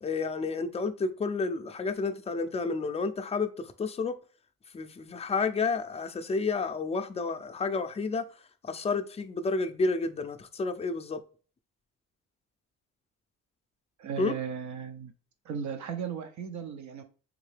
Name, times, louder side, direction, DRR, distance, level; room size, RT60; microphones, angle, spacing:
voice 1, 0.0-4.1 4.7-8.2 8.6-11.2 14.2-14.3, left 4 dB, 20° left, 0.4 m, -30 dB
voice 2, 14.0-15.1 15.4-17.0, right 7 dB, 70° right, 0.7 m, -36 dB
3.7 x 2.7 x 3.3 m
cardioid pair, 90°, 30 cm